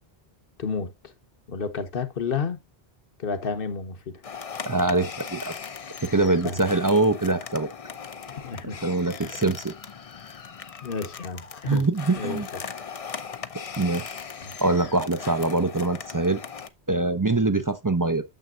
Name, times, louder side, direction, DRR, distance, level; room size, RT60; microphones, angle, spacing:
voice 1, 0.6-1.1 1.5-2.6 3.2-4.2 6.4-6.6 8.2-8.8 9.2-9.5 10.8-11.8 12.2-12.7 14.4-14.5, left 5 dB, 60° left, 1.2 m, -31 dB
sound 1, 4.2-16.7, left 6 dB, 40° left, 0.6 m, -39 dB
voice 2, 4.6-5.5 6.0-7.7 8.8-9.7 11.7-12.5 13.8-14.0 14.6-16.4 16.9-18.2, right 2 dB, 25° right, 0.5 m, -23 dB
9.2 x 6.9 x 2.4 m
omnidirectional pair, 1.1 m